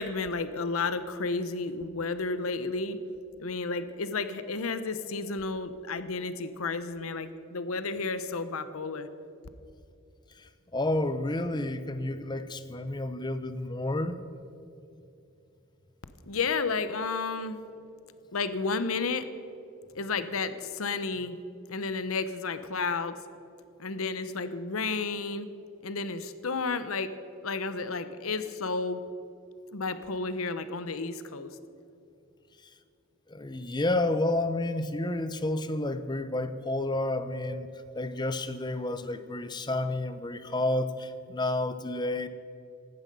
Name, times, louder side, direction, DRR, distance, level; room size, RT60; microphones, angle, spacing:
voice 1, 0.0-3.0 3.4-9.1 16.3-17.6 18.3-19.3 19.9-21.4 21.7-23.2 23.8-25.5 25.8-27.2 27.4-29.0 29.7-31.6, left 4 dB, 90° left, 12 dB, 0.9 m, -32 dB
voice 2, 10.7-14.1 33.3-37.7 37.9-42.3, left 2 dB, 20° left, 11 dB, 0.7 m, -30 dB
16.0 x 12.0 x 5.3 m, 2.7 s
head